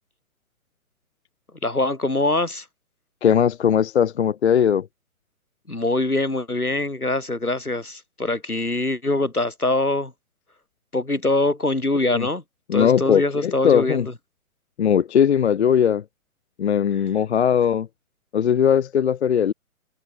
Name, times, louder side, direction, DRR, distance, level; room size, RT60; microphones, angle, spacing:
voice 1, 1.6-2.7 5.7-10.1 10.9-12.4 12.7-14.1, left 2 dB, 85° left, 4.6 m, -23 dB
voice 2, 3.2-4.9 12.0-12.3 12.7-14.1 14.8-16.0 16.6-17.9 18.3-19.5, left 8 dB, 50° left, 0.5 m, -19 dB
figure-of-eight pair, 125°, 43 cm